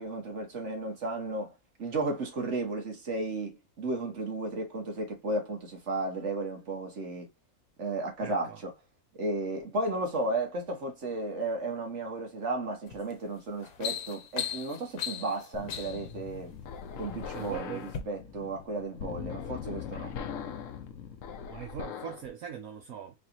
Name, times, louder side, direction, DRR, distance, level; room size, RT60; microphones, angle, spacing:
voice 1, 0.0-1.5 1.8-7.3 7.8-8.7 9.1-16.5 16.9-20.2, right 2 dB, 55° right, 1.6 m, -34 dB
voice 2, 8.2-8.6 17.3-17.9 21.5-23.1, right 9 dB, 75° right, 1.2 m, -41 dB
sound 1, 12.9-13.1 13.5-16.1 16.9-17.5 17.9-18.0, left 8 dB, 90° left, 1.3 m, -37 dB
sound 2, 15.5-22.3, left 7 dB, 70° left, 1.0 m, -41 dB
3.9 x 2.5 x 2.7 m
omnidirectional pair, 1.5 m